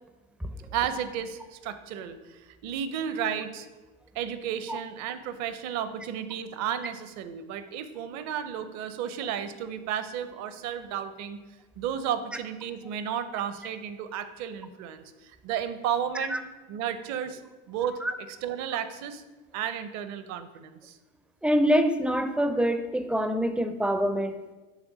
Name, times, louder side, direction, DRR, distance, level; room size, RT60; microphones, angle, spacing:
voice 1, 0.7-3.7 4.1-11.4 11.8-16.4 16.7-17.4 17.7-18.0 18.3-19.2 19.5-21.0, right 9 dB, 55° right, 12 dB, 0.6 m, -33 dB
voice 2, 21.4-24.4, equal, 5° right, 9 dB, 0.4 m, -25 dB
6.4 x 3.5 x 5.0 m, 1.2 s
hypercardioid pair, 80°, 34 cm